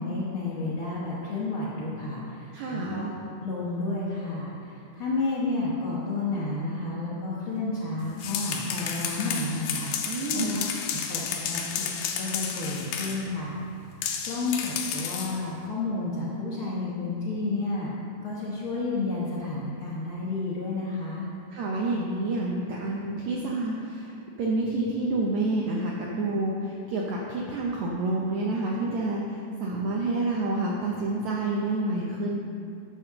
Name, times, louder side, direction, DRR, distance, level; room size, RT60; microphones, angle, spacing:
voice 1, 0.0-3.1 3.4-9.9 10.3-10.6 11.1-11.9 12.2-13.6 14.2-17.9 18.2-21.3, left 3 dB, 70° left, -8 dB, 1.2 m, -31 dB
voice 2, 2.5-3.1 10.1-10.7 21.5-32.4, right 2 dB, 80° right, -3 dB, 1.6 m, -28 dB
sound 1, 8.0-13.3 14.0-15.4, left 7 dB, 85° left, 2.7 m, -32 dB
11.0 x 4.8 x 6.8 m, 2.5 s
omnidirectional pair, 4.4 m